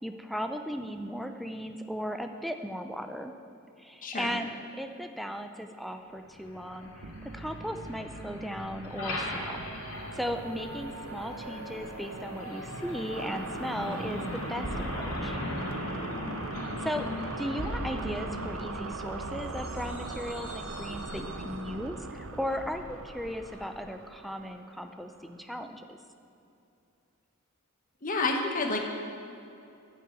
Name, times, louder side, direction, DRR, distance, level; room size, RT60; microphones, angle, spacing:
voice 1, 0.0-3.3 3.8-6.9 7.3-15.4 16.8-26.0, equal, ahead, 6 dB, 0.5 m, -37 dB
voice 2, 4.0-4.4 28.0-28.8, left 3 dB, 40° left, 2 dB, 1.1 m, -29 dB
Truck, 6.1-23.8, left 1 dB, 90° left, 2.4 m, -40 dB
sound 1, 7.0-25.5, right 3 dB, 70° right, 0.8 m, -42 dB
sound 2, 14.6-20.3, right 1 dB, 45° right, 2.8 m, -42 dB
12.0 x 6.0 x 8.3 m, 2.7 s
head